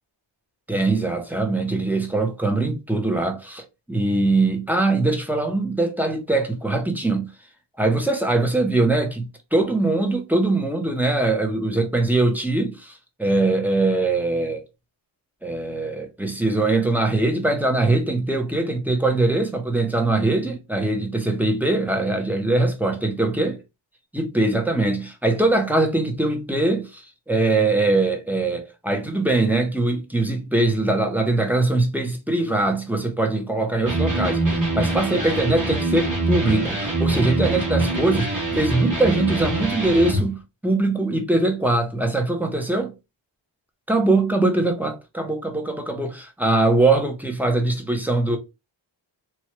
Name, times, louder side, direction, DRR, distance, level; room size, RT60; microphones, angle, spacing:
voice 1, 0.7-7.3 7.8-12.9 13.2-14.6 15.4-23.5 24.1-42.9 43.9-48.4, right 2 dB, 5° right, 0.7 m, -22 dB
Electric guitar, 33.8-40.3, right 2 dB, 40° right, 1.5 m, -24 dB
3.1 x 2.3 x 3.0 m
wide cardioid pair, 105°, 47 cm